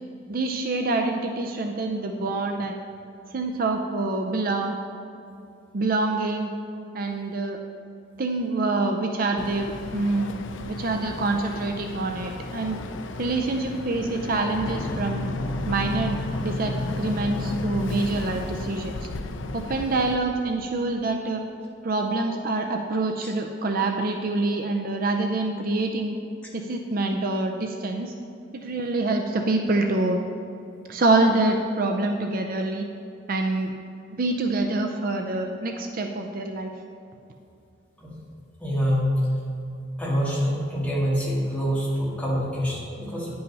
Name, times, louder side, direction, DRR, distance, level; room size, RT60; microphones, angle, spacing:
voice 1, 0.3-2.8 3.3-4.8 5.7-6.5 6.9-7.6 8.2-10.4 10.7-12.8 13.2-15.3 15.7-18.9 19.5-21.4 21.8-26.2 26.5-28.1 28.5-30.2 30.9-32.9 33.3-33.7 34.1-36.7, right 2 dB, 50° right, 4 dB, 0.5 m, -26 dB
Boat Water vehicle, 9.4-20.2, left 2 dB, 80° left, 0.5 m, -33 dB
voice 2, 38.6-39.2 40.0-43.3, equal, 5° left, -7 dB, 2.1 m, -25 dB
9.7 x 5.5 x 5.4 m, 2.6 s
head